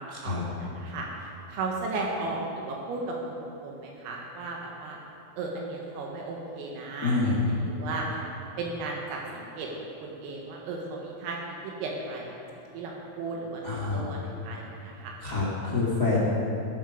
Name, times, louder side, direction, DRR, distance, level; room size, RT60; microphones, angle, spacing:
voice 1, 0.0-5.0 5.4-8.2 8.6-9.7 10.0-11.4 11.6-12.4 12.7-15.1, right 3 dB, 80° right, -1 dB, 4.0 m, -35 dB
voice 2, 7.0-7.4 13.6-14.1 15.2-16.2, left 3 dB, 45° left, -7 dB, 1.2 m, -26 dB
17.5 x 11.5 x 5.2 m, 2.7 s
omnidirectional pair, 5.9 m